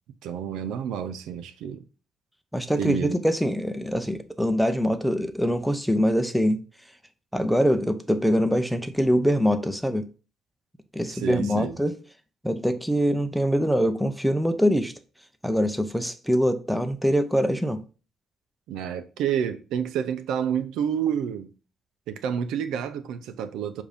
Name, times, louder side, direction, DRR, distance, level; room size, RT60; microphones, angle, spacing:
voice 1, 0.2-1.8 2.8-3.2 11.1-11.8 18.7-21.5 22.1-23.8, right 8 dB, 85° right, 0.6 m, -29 dB
voice 2, 2.5-6.6 7.3-10.1 10.9-11.9 12.4-14.9 15.4-17.8, equal, ahead, 0.7 m, -23 dB
7.0 x 2.7 x 5.1 m
cardioid pair, 105°, 0 cm